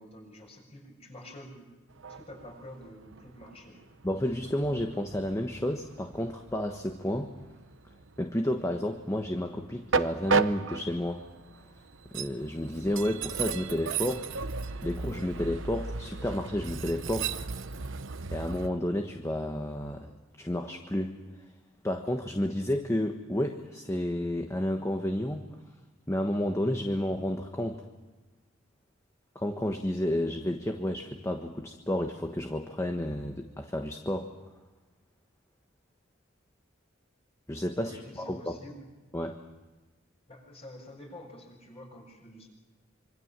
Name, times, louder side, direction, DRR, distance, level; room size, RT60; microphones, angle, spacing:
voice 1, 0.0-1.7 2.1-3.8 37.7-38.9 40.3-42.5, left 1 dB, 35° left, 1 dB, 7.3 m, -48 dB
Train, 1.9-18.7, right 5 dB, 85° right, 0.9 m, -35 dB
voice 2, 4.0-7.3 8.2-11.2 12.1-14.3 14.8-17.4 18.3-21.1 21.8-25.4 26.1-27.9 29.3-34.3 37.5-38.5 39.1-39.4, left 1 dB, 15° left, 4 dB, 1.3 m, -31 dB
26.0 x 25.5 x 7.5 m, 1.2 s
head